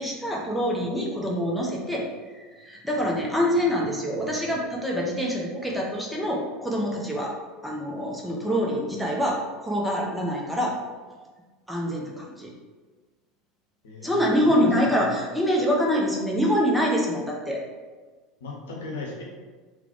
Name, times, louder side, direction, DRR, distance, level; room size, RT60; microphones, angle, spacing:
voice 1, 0.0-2.1 2.4-7.3 7.6-10.8 11.7-12.5 14.0-17.6, equal, 5° right, -3 dB, 0.8 m, -25 dB
voice 2, 13.8-14.2 14.5-15.2 18.4-19.2, left 3 dB, 65° left, -2 dB, 0.9 m, -37 dB
4.0 x 2.3 x 4.4 m, 1.3 s
figure-of-eight pair, 70°, 0 cm